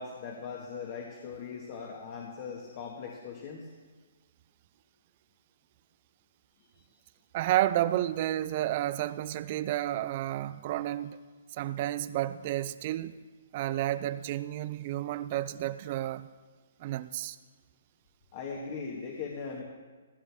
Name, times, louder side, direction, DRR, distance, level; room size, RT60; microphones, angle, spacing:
voice 1, 0.0-3.7 6.8-6.9 18.3-19.6, left 5 dB, 40° left, 2.0 m, -40 dB
voice 2, 7.3-11.2 11.5-13.2 13.5-16.3 16.8-17.4, right 13 dB, 40° right, 0.5 m, -31 dB
15.5 x 14.5 x 3.6 m
hypercardioid pair, 145°, 0 cm